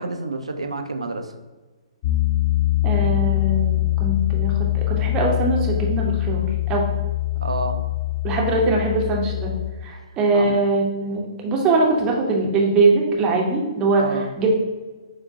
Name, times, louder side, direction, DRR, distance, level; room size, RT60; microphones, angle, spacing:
voice 1, 0.0-1.3 7.4-7.8 10.3-10.5 14.0-14.3, right 3 dB, 75° right, 6 dB, 0.4 m, -28 dB
Piano, 2.0-9.7, left 17 dB, 35° left, 0.4 m, -23 dB
voice 2, 2.8-6.8 8.2-9.5 9.8-14.0 14.4-14.5, right 3 dB, 20° right, -1 dB, 0.6 m, -22 dB
6.5 x 2.2 x 2.7 m, 1.3 s
figure-of-eight pair, 125°, 3 cm